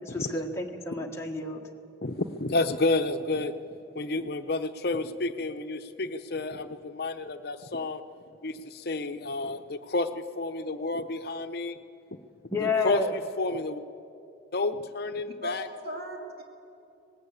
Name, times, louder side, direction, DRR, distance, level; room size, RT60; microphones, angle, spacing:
voice 1, 0.0-1.6 12.5-13.1, left 3 dB, 15° left, 0 dB, 1.4 m, -30 dB
voice 2, 2.0-3.6 3.9-8.0 8.4-11.8 12.6-13.8 14.5-15.7, left 2 dB, 55° left, 9 dB, 0.8 m, -30 dB
voice 3, 15.2-16.4, equal, 55° right, 1 dB, 2.9 m, -38 dB
19.5 x 18.0 x 8.4 m, 2.7 s
head